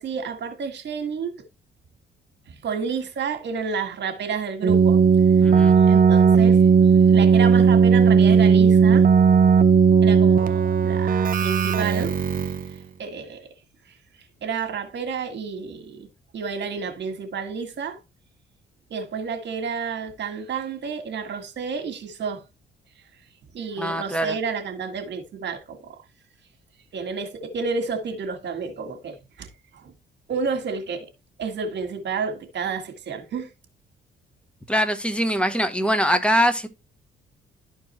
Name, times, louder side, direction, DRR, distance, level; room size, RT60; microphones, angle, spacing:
voice 1, 0.0-1.4 2.5-5.0 5.8-6.7 7.1-9.1 10.0-12.2 12.7-13.5 13.9-14.0 14.4-16.1 16.3-18.0 18.9-22.4 23.5-26.0 26.9-29.9 30.3-31.1 31.4-33.5, right 5 dB, 60° right, 1.9 m, -30 dB
Keyboard (musical), 4.6-12.7, right 6 dB, 45° right, 0.8 m, -16 dB
voice 2, 5.4-5.8 23.8-24.3 34.7-36.7, equal, 5° left, 1.2 m, -23 dB
12.0 x 4.6 x 3.2 m
cardioid pair, 90°, 20 cm